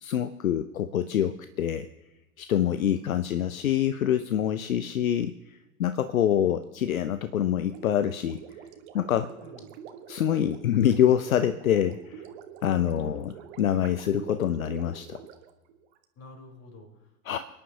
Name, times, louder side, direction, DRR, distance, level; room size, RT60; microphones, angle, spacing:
voice 1, 0.0-1.9 2.4-8.4 8.9-9.3 10.1-12.3 12.6-15.2 17.3-17.4, left 10 dB, 75° left, 12 dB, 0.7 m, -26 dB
voice 2, 2.8-3.1 9.4-9.7 12.8-13.4 16.2-17.1, equal, 40° left, 1 dB, 4.1 m, -48 dB
Gurgling, 7.7-16.0, right 8 dB, 50° right, 1.3 m, -46 dB
29.5 x 10.0 x 2.8 m, 1.1 s
figure-of-eight pair, 85°, 42 cm